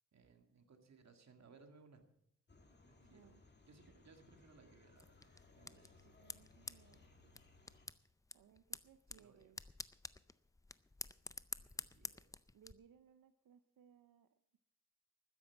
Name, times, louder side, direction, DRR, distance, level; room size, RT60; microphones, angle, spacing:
voice 1, 0.1-2.0 2.8-3.4 3.7-6.2 9.1-9.5 11.7-12.3, right 4 dB, 55° right, 5 dB, 2.0 m, -64 dB
sound 1, 2.5-7.9, left 3 dB, 30° left, 2.0 m, -65 dB
voice 2, 3.1-3.4 6.0-7.4 8.3-9.6 12.0-12.1 12.5-14.6, right 8 dB, 85° right, 10 dB, 0.7 m, -66 dB
sound 2, 5.0-12.7, left 2 dB, 10° left, 0.4 m, -51 dB
13.0 x 10.0 x 7.2 m, 0.77 s
wide cardioid pair, 105°, 33 cm